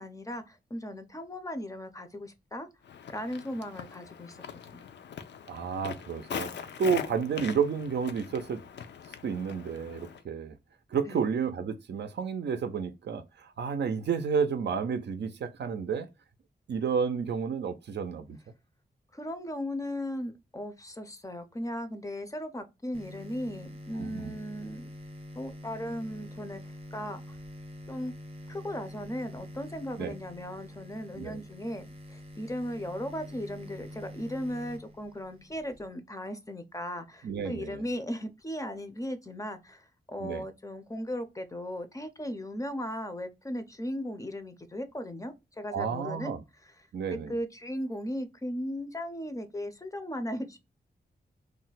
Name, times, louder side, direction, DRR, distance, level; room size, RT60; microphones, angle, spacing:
voice 1, 0.0-2.7 3.1-4.4 4.7-4.9 11.1-11.2 19.1-24.9 25.3-26.6 26.9-27.4 27.9-28.1 28.5-46.3 47.3-50.6, equal, 20° left, 0.5 m, -37 dB
Walk footsteps, 2.8-10.2, left 7 dB, 85° left, 0.4 m, -42 dB
voice 2, 5.5-8.6 9.2-10.6 10.9-16.1 16.7-18.4 24.0-24.4 30.0-30.1 31.1-31.4 37.2-37.8 40.2-40.4 45.7-46.4 46.9-47.3, right 6 dB, 75° right, 0.5 m, -31 dB
sound 1, 22.9-35.9, equal, 30° right, 0.6 m, -46 dB
2.4 x 2.1 x 3.9 m
wide cardioid pair, 110°, 18 cm